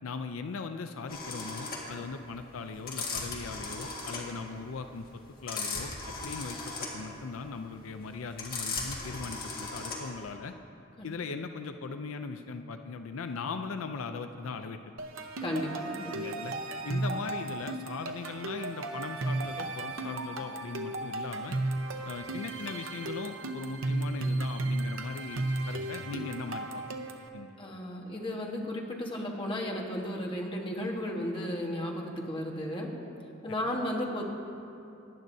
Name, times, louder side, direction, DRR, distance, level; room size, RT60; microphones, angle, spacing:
voice 1, 0.0-5.9 6.2-10.5 11.0-14.8 16.1-16.5 16.8-21.6 22.0-26.8 27.3-27.6, left 4 dB, 85° left, 8 dB, 0.5 m, -39 dB
sound 1, 1.1-10.3, left 3 dB, 45° left, 1.8 m, -37 dB
sound 2, 15.0-27.3, right 2 dB, 80° right, 0.8 m, -34 dB
voice 2, 15.4-16.2 27.6-32.9 33.4-34.2, left 1 dB, 25° left, -1 dB, 1.3 m, -34 dB
18.5 x 10.5 x 2.7 m, 2.8 s
head